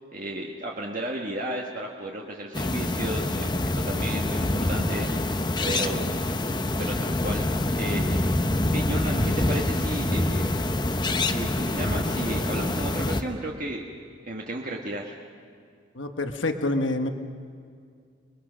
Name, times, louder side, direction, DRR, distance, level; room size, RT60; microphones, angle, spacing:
voice 1, 0.1-5.1 5.6-6.1 6.8-7.5 7.8-8.2 8.7-10.5 11.2-13.9 14.2-15.1, right 1 dB, 40° right, -1 dB, 1.5 m, -33 dB
sound 1, 2.5-13.2, left 1 dB, 20° left, 0.8 m, -26 dB
voice 2, 15.9-17.1, left 2 dB, 70° left, 6 dB, 1.4 m, -27 dB
29.5 x 21.5 x 6.3 m, 2.2 s
head